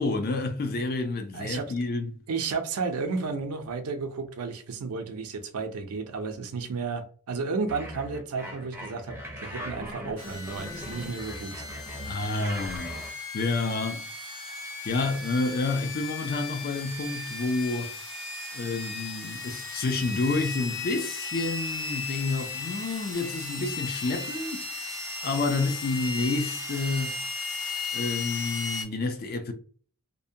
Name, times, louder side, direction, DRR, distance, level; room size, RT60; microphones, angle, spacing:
voice 1, 0.0-2.1 12.0-13.0 13.3-14.1 14.8-17.9 18.5-27.1 27.9-29.5, left 3 dB, 45° left, 0.4 m, -29 dB
voice 2, 1.3-1.7 2.3-11.7, right 4 dB, 80° right, 0.5 m, -33 dB
sound 1, 7.7-13.1, equal, 10° right, 0.5 m, -40 dB
engine spin up, 10.2-28.8, left 4 dB, 60° left, 1.0 m, -36 dB
2.6 x 2.1 x 2.6 m
head